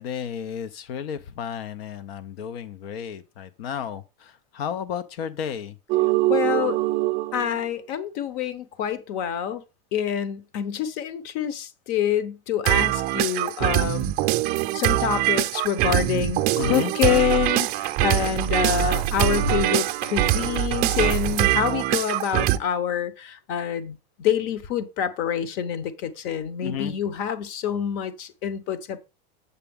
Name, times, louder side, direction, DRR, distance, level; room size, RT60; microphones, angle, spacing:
voice 1, 0.0-5.8 16.5-16.9 26.6-26.9, left 8 dB, 80° left, 0.8 m, -33 dB
sound 1, 5.9-7.6 12.7-22.6, right 15 dB, 35° right, 0.5 m, -23 dB
voice 2, 6.3-6.8 7.3-9.6 9.9-14.1 14.7-29.0, left 9 dB, 45° left, 1.0 m, -26 dB
8.2 x 7.0 x 3.6 m
supercardioid pair, 155°, 30 cm